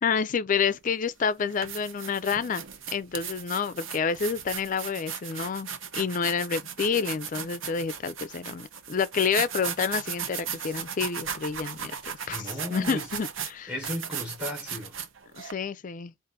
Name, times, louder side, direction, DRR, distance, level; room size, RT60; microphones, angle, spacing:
voice 1, 0.0-2.6 2.9-12.4 12.7-13.7 15.4-16.1, left 6 dB, 40° left, 0.4 m, -29 dB
sound 1, 0.7-0.9 1.4-15.5, right 7 dB, 80° right, 0.7 m, -37 dB
voice 2, 12.3-13.1 13.7-15.0, left 1 dB, 5° right, 1.0 m, -35 dB
3.9 x 2.5 x 3.7 m
head